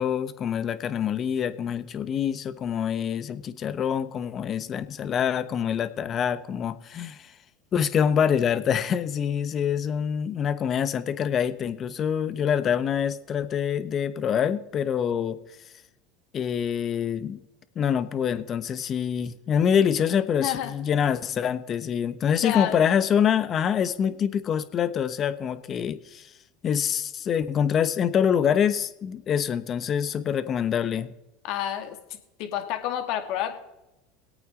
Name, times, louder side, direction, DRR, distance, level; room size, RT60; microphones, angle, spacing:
voice 1, 0.0-7.3 7.7-15.4 16.3-17.4 17.8-26.3 26.6-31.1, left 8 dB, 40° left, 13 dB, 1.1 m, -25 dB
voice 2, 20.4-20.7 22.4-22.8 31.4-32.0 32.4-33.6, left 11 dB, 65° left, 6 dB, 2.1 m, -29 dB
20.5 x 8.8 x 3.8 m, 0.94 s
hypercardioid pair, 95°, 0 cm